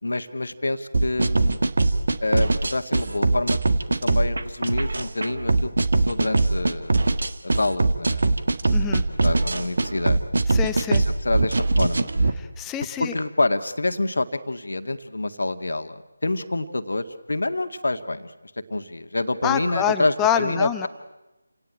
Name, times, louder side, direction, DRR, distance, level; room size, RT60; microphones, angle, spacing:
voice 1, 0.0-1.6 2.2-3.6 4.0-6.9 7.4-8.4 9.2-10.2 10.9-12.1 13.0-18.3 18.7-20.9, left 2 dB, 60° left, 9 dB, 1.9 m, -27 dB
sound 1, 0.9-12.3, right 2 dB, 50° right, 1.7 m, -22 dB
voice 2, 8.7-9.0 10.5-11.0 12.4-13.1 19.4-20.9, left 9 dB, 10° left, 9 dB, 0.9 m, -26 dB
29.5 x 18.0 x 8.9 m, 1.0 s
figure-of-eight pair, 160°, 0 cm